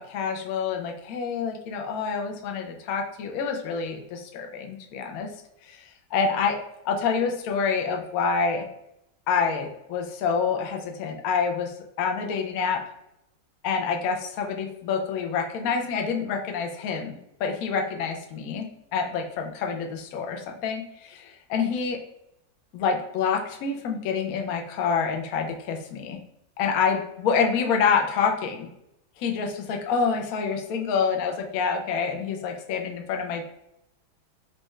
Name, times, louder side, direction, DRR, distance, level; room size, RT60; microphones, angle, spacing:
voice 1, 0.0-5.3 5.7-5.8 6.1-8.7 9.3-12.8 13.6-18.6 18.9-22.0 22.7-26.2 26.6-28.7 29.2-33.4, left 5 dB, 70° left, 2 dB, 0.9 m, -27 dB
4.1 x 2.2 x 3.1 m, 0.80 s
omnidirectional pair, 1.8 m